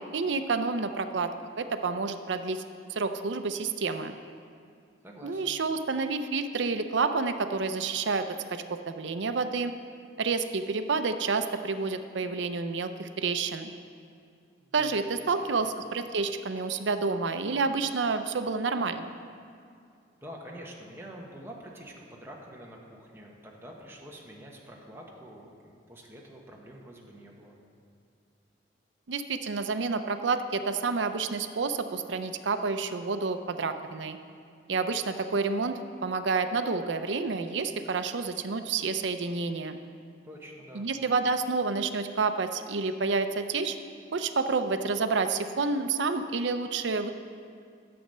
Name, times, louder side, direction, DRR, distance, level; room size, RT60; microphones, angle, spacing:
voice 1, 0.1-1.3 1.6-2.6 2.9-4.1 5.2-8.2 8.5-9.7 10.2-13.7 14.7-19.1 29.1-34.2 34.7-39.8 40.7-43.8 44.1-47.1, right 4 dB, 85° right, 9 dB, 0.6 m, -29 dB
voice 2, 5.0-5.5 14.6-14.9 15.2-15.7 20.2-27.6 40.2-40.9, equal, 15° right, -2 dB, 1.2 m, -47 dB
11.0 x 7.8 x 5.5 m, 2.4 s
head